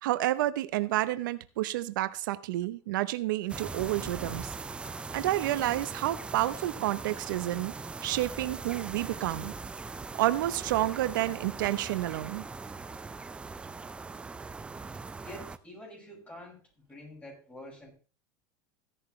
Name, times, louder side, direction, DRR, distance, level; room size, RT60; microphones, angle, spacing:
voice 1, 0.0-4.5 5.1-7.7 8.0-9.5 10.2-12.4, right 15 dB, 90° right, 0.8 m, -30 dB
sound 1, 3.5-15.6, right 4 dB, 10° right, 0.5 m, -40 dB
voice 2, 15.2-16.6 16.9-17.9, left 1 dB, 15° left, 6.0 m, -47 dB
15.5 x 11.0 x 3.2 m
supercardioid pair, 145°, 10 cm